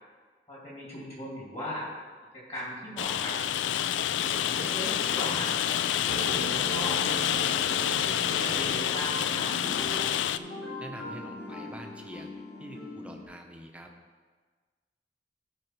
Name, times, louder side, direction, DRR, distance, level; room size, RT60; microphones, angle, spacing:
voice 1, 0.5-1.9 2.3-3.4 4.1-5.5 5.9-7.0 7.7-9.5, left 1 dB, 35° left, -5 dB, 2.6 m, -38 dB
Rain, 3.0-10.4, left 10 dB, 85° left, 0.3 m, -28 dB
sound 1, 6.1-11.3, right 6 dB, 75° right, 0.3 m, -41 dB
sound 2, 9.5-13.2, left 2 dB, 60° left, 2.8 m, -43 dB
voice 2, 10.8-12.3 12.6-13.9, right 1 dB, 5° right, 2 dB, 0.7 m, -45 dB
12.0 x 4.9 x 4.7 m, 1.5 s
head